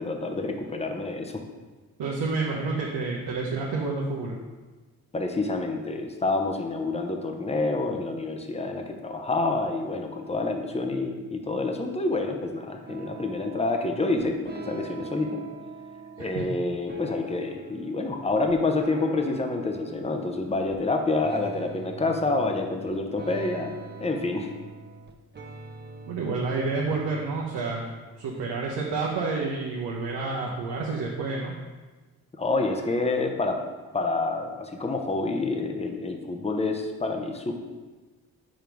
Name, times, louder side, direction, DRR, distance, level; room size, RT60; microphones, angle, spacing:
voice 1, 0.0-1.4 5.1-15.4 16.2-23.7 24.0-24.5 32.4-33.6 33.9-37.5, left 3 dB, 15° left, 4 dB, 0.9 m, -28 dB
voice 2, 2.0-4.4 16.2-16.4 26.1-27.9 28.2-31.6, right 3 dB, 65° right, -3 dB, 1.0 m, -29 dB
sound 1, 12.9-16.4 16.9-20.9 21.2-28.3, right 3 dB, 25° right, 0.9 m, -43 dB
5.2 x 4.4 x 5.3 m, 1.3 s
hypercardioid pair, 40°, 43 cm